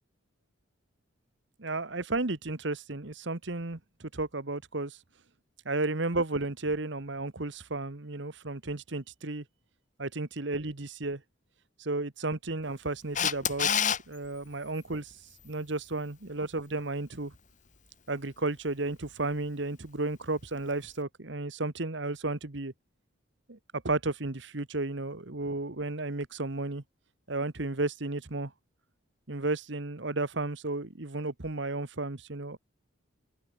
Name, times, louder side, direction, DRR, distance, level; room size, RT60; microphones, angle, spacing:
voice 1, 1.6-5.0 5.6-9.4 10.0-11.2 11.8-15.1 15.4-17.3 18.1-22.7 23.5-23.6 23.8-26.8 27.3-28.5 29.3-32.6, right 2 dB, 65° right, 1.4 m, -33 dB
Camera, 13.2-14.0 20.7-20.8, left 8 dB, 40° left, 2.2 m, -26 dB
open air
head